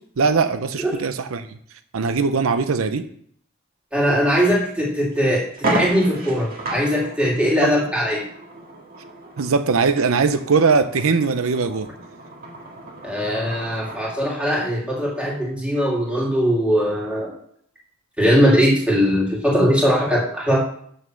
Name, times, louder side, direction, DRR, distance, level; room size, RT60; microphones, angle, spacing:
voice 1, 0.2-1.5 1.9-3.1 7.6-7.7 9.4-11.9, right 4 dB, 85° right, 10 dB, 0.6 m, -20 dB
voice 2, 3.9-8.3 13.0-17.4 18.2-20.6, equal, 5° right, -4 dB, 2.7 m, -20 dB
sound 1, 4.6-4.7 5.1-5.2 5.5-14.2, right 2 dB, 45° right, 2.1 m, -32 dB
8.2 x 6.3 x 6.3 m, 0.63 s
head